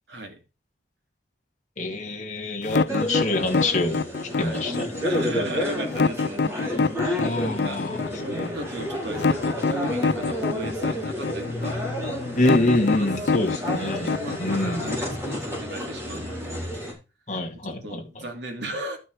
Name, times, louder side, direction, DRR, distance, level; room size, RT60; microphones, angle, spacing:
voice 1, 0.1-0.4 4.4-4.6 5.0-6.5 7.4-7.9 8.3-11.8 12.9-16.8 17.5-19.0, right 1 dB, 75° right, 2.8 m, -36 dB
voice 2, 1.8-4.0 4.4-4.9 7.0-8.0 12.4-14.1 14.4-14.9 17.3-18.0, left 1 dB, 40° left, 2.3 m, -25 dB
sound 1, 2.6-15.6, left 4 dB, 70° left, 0.4 m, -25 dB
sound 2, 2.9-16.9, left 1 dB, 15° right, 4.8 m, -31 dB
12.0 x 6.1 x 4.7 m
head